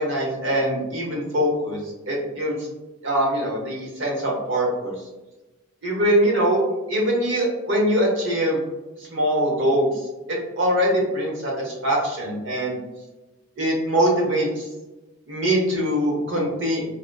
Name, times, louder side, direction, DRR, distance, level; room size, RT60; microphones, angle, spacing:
voice 1, 0.0-2.6 3.0-4.9 5.8-6.6 6.9-8.6 9.1-9.9 10.6-12.8 13.6-14.7 15.3-16.8, equal, 65° right, -3 dB, 0.9 m, -22 dB
3.8 x 2.1 x 2.2 m, 1.1 s
head